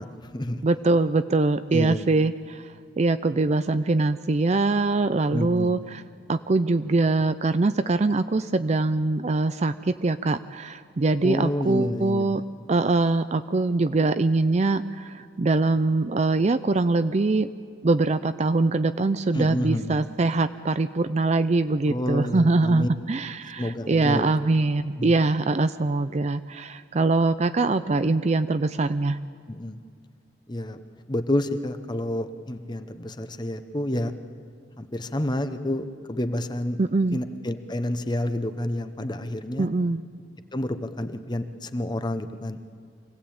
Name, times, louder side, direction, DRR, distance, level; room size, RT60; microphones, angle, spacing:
voice 1, 0.0-0.6 1.7-2.1 5.3-5.8 11.2-12.4 19.3-20.0 21.9-22.9 23.6-24.4 25.0-25.1 29.5-29.8 30.5-30.8 31.1-34.1 34.8-36.8 37.1-39.7 40.5-42.6, left 1 dB, 25° left, 9 dB, 0.9 m, -29 dB
voice 2, 0.6-2.7 3.0-6.0 6.3-12.4 12.7-17.5 17.8-29.2 36.8-37.2 39.6-40.0, right 3 dB, 35° right, 12 dB, 0.5 m, -23 dB
25.0 x 17.0 x 8.7 m, 2.2 s
head